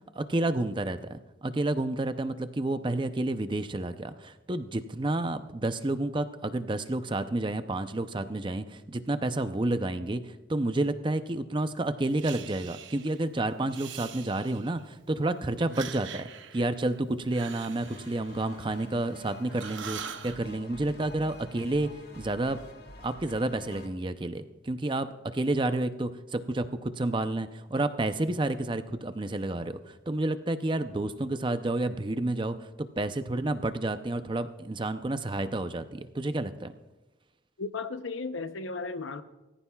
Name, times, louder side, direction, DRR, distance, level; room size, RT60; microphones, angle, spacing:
voice 1, 0.1-16.3 16.5-21.9 22.2-22.6 23.0-36.7, right 2 dB, 25° right, 0.5 m, -30 dB
Breathing, 12.2-13.2 13.6-14.9 15.6-19.2 19.5-20.4, right 8 dB, 75° right, 0.8 m, -44 dB
sound 1, 17.7-23.9, left 1 dB, 55° left, 1.3 m, -48 dB
voice 2, 37.6-39.2, left 4 dB, 85° left, 0.8 m, -35 dB
23.0 x 14.0 x 2.3 m
head